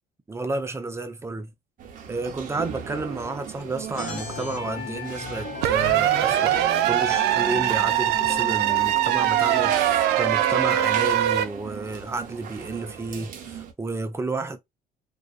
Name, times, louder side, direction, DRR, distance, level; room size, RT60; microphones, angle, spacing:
voice 1, 0.3-1.5 2.1-14.6, right 3 dB, 15° right, 0.4 m, -31 dB
sound 1, 1.8-13.7, right 7 dB, 50° right, 0.7 m, -38 dB
sound 2, 4.0-11.1, left 5 dB, 45° left, 0.9 m, -37 dB
sound 3, 5.6-11.5, right 13 dB, 85° right, 0.4 m, -22 dB
2.4 x 2.4 x 2.4 m
cardioid pair, 110°, 17 cm